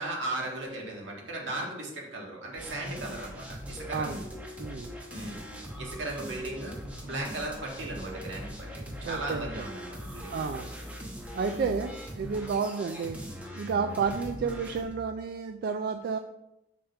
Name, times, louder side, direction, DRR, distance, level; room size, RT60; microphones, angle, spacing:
voice 1, 0.0-4.2 5.1-5.4 5.8-6.7 7.0-10.5 11.5-11.7, right 2 dB, 75° right, -2 dB, 1.5 m, -37 dB
sound 1, 2.6-14.9, equal, 10° right, 0.9 m, -41 dB
voice 2, 4.6-4.9 9.0-9.6 10.3-10.7 11.3-13.2 13.5-16.2, right 5 dB, 55° right, 6 dB, 0.3 m, -31 dB
5.6 x 5.0 x 3.4 m, 0.88 s
head